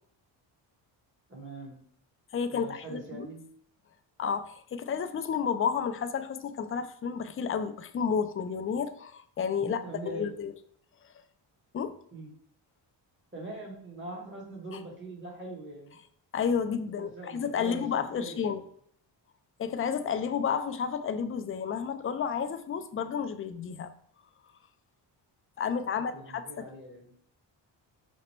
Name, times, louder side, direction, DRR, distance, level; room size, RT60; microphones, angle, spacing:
voice 1, 1.3-1.8 2.5-3.4 9.5-10.3 12.1-12.3 13.3-16.0 17.0-18.5 25.9-27.1, right 2 dB, 25° right, -1 dB, 1.6 m, -42 dB
voice 2, 2.3-3.3 4.2-10.5 11.7-11.9 16.3-18.6 19.6-23.9 25.6-26.6, left 7 dB, 30° left, 9 dB, 0.4 m, -31 dB
5.1 x 2.1 x 4.4 m, 0.64 s
cardioid pair, 85°, 47 cm